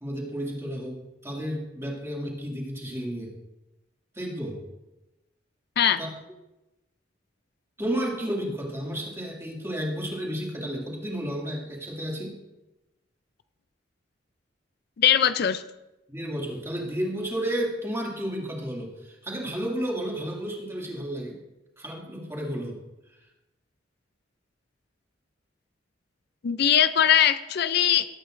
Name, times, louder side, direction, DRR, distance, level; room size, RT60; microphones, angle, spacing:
voice 1, 0.0-3.3 4.1-4.6 6.0-6.1 7.8-12.4 16.1-21.4 21.8-22.8, equal, 15° right, -2 dB, 2.2 m, -32 dB
voice 2, 15.0-15.6 26.4-28.1, left 9 dB, 60° left, 12 dB, 0.4 m, -21 dB
18.0 x 8.7 x 2.5 m, 0.97 s
head